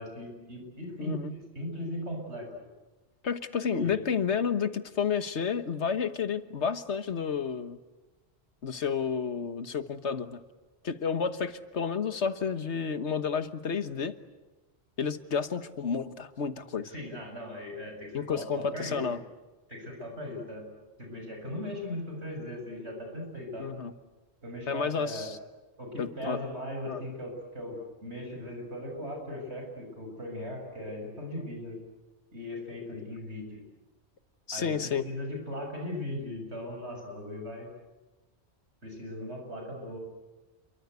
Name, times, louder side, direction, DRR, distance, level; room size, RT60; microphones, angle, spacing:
voice 1, 0.0-1.2 1.5-2.5 3.6-4.0 16.8-19.1 19.7-20.6 21.0-23.7 24.4-25.3 25.8-31.8 32.3-33.6 34.5-37.7 38.8-40.0, left 1 dB, 80° right, 2 dB, 7.6 m, -38 dB
voice 2, 1.0-1.3 3.2-7.8 8.6-10.4 10.8-14.1 15.0-16.9 18.1-19.2 23.6-23.9 24.7-25.4 26.0-26.4 26.9-27.0 34.5-35.0, left 6 dB, 85° left, 11 dB, 1.6 m, -31 dB
28.5 x 23.5 x 8.2 m, 1.2 s
omnidirectional pair, 1.1 m